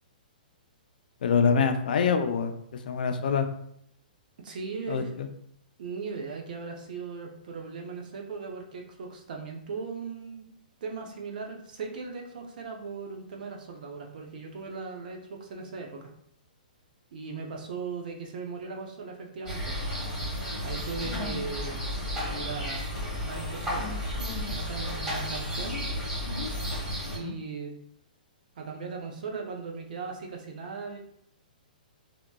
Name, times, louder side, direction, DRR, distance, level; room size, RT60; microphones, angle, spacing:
voice 1, 1.2-2.5 2.9-3.5 4.9-5.3 27.2-27.4, left 6 dB, 65° left, 7 dB, 0.4 m, -25 dB
voice 2, 4.4-5.2 5.8-10.5 10.8-16.1 17.1-19.8 20.6-21.9 22.3-22.9 23.2-23.8 24.5-25.8 27.1-27.7 28.6-31.0, right 5 dB, 65° right, 2 dB, 0.6 m, -38 dB
sound 1, 19.5-27.2, equal, 15° right, 1.5 m, -32 dB
2.8 x 2.8 x 2.2 m, 0.71 s
hypercardioid pair, 155°, 5 cm